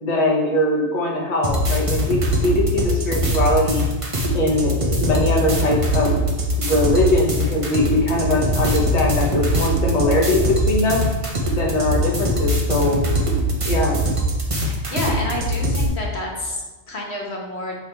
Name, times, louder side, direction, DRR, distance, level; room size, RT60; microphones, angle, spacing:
voice 1, 0.0-3.8 4.3-6.2 6.6-11.1 11.6-13.0 13.6-14.0, left 1 dB, 35° left, -2 dB, 1.0 m, -21 dB
sound 1, 1.4-15.9, equal, 30° right, 1.0 m, -22 dB
sound 2, 7.7-13.9, right 1 dB, 10° right, 2.0 m, -37 dB
voice 2, 14.6-17.8, left 1 dB, 65° left, -2 dB, 1.5 m, -29 dB
7.3 x 3.5 x 4.4 m, 1.2 s
omnidirectional pair, 1.2 m